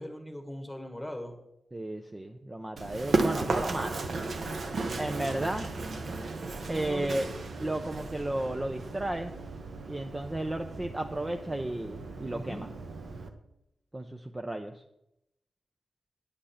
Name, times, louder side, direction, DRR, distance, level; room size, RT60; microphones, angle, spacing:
voice 1, 0.0-1.4 6.7-7.4 12.3-12.7, left 1 dB, 5° left, 5 dB, 1.5 m, -39 dB
voice 2, 1.7-4.1 5.0-5.7 6.7-7.3 7.6-9.3 9.9-12.7 13.9-14.8, right 1 dB, 20° right, 5 dB, 0.5 m, -33 dB
Run, 2.8-13.3, right 3 dB, 60° right, 1.1 m, -35 dB
9.9 x 8.7 x 5.7 m, 0.83 s
wide cardioid pair, 170°, 0 cm